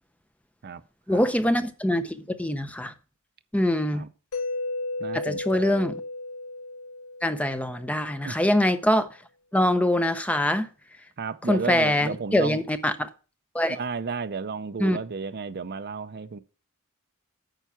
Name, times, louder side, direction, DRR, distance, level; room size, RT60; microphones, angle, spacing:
voice 1, 1.1-2.9 3.5-4.0 5.1-6.0 7.2-9.1 9.5-10.7 11.5-13.1 13.5-13.8 14.8-15.0, left 1 dB, 5° left, 0.6 m, -24 dB
Mallet percussion, 4.3-8.1, left 2 dB, 70° left, 0.8 m, -34 dB
voice 2, 5.0-5.9 8.2-8.4 11.2-12.6 13.7-16.4, right 5 dB, 50° right, 0.5 m, -33 dB
9.1 x 5.8 x 5.8 m
head